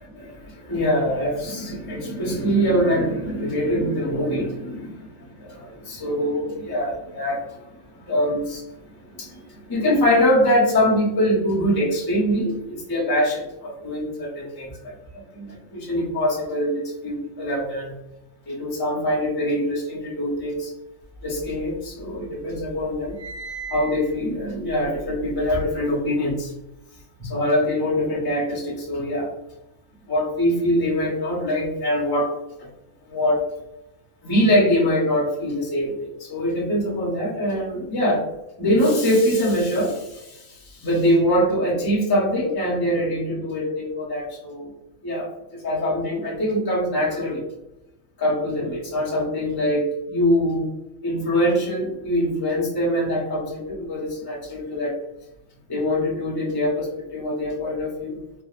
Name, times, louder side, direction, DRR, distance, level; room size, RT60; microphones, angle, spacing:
voice 1, 0.1-8.4 9.0-17.9 18.5-20.7 21.2-23.2 23.7-26.5 27.2-29.3 30.1-32.7 33.1-33.4 34.2-38.3 38.6-44.7 45.0-47.5 48.2-50.7 51.0-54.9 55.7-58.2, equal, 25° left, -4 dB, 0.5 m, -23 dB
sound 1, 21.2-22.2 22.5-25.9, right 4 dB, 60° right, 1.3 m, -38 dB
3.4 x 2.1 x 2.3 m, 0.94 s
omnidirectional pair, 1.6 m